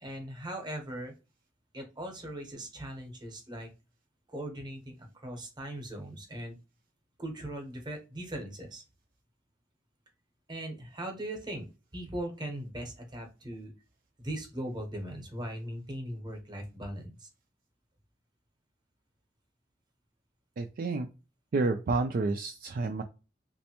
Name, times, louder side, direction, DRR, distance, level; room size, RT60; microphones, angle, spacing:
voice 1, 0.0-1.1 1.7-3.7 4.3-6.6 7.2-8.8 10.5-11.7 11.9-13.7 14.2-17.3, right 1 dB, 25° right, 3 dB, 0.9 m, -39 dB
voice 2, 20.6-21.1 21.5-23.0, right 3 dB, 50° right, 6 dB, 0.4 m, -29 dB
3.2 x 2.5 x 2.9 m, 0.30 s
head